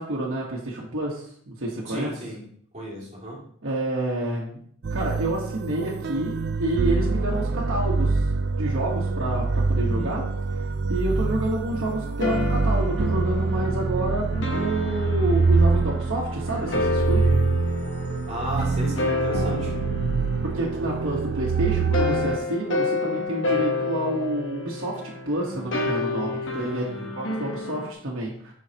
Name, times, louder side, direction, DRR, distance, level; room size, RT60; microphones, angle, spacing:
voice 1, 0.0-2.1 3.6-4.6 4.9-8.2 8.5-10.2 10.9-17.4 20.4-26.8 27.1-28.5, right 1 dB, 75° right, -4 dB, 1.3 m, -29 dB
voice 2, 1.9-2.5 2.7-3.4 9.7-10.2 18.3-19.7 26.4-27.2, equal, 30° right, -5 dB, 2.4 m, -34 dB
sound 1, 4.8-22.4, right 4 dB, 50° right, 0.4 m, -25 dB
sound 2, 11.7-21.4 21.9-27.9, left 3 dB, 65° left, 1.0 m, -30 dB
7.5 x 5.6 x 2.9 m, 0.62 s
head